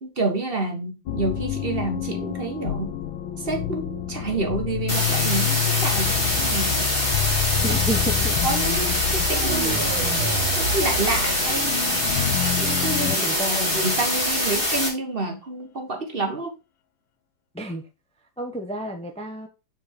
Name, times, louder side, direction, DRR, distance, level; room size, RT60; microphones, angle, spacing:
voice 1, 0.0-2.9 3.4-6.9 7.7-7.8 8.4-9.7 10.6-11.8 12.6-16.5, right 2 dB, 30° right, 1.5 m, -28 dB
sound 1, 1.1-13.3, left 11 dB, 85° left, 1.5 m, -28 dB
sound 2, 4.9-14.9, left 1 dB, 25° left, 4.0 m, -24 dB
voice 2, 7.6-8.4 13.0-14.0 17.5-17.8 18.4-19.5, right 1 dB, 10° left, 0.3 m, -31 dB
sound 3, 9.3-12.3, right 3 dB, 85° right, 2.2 m, -30 dB
7.2 x 4.7 x 4.6 m
omnidirectional pair, 2.1 m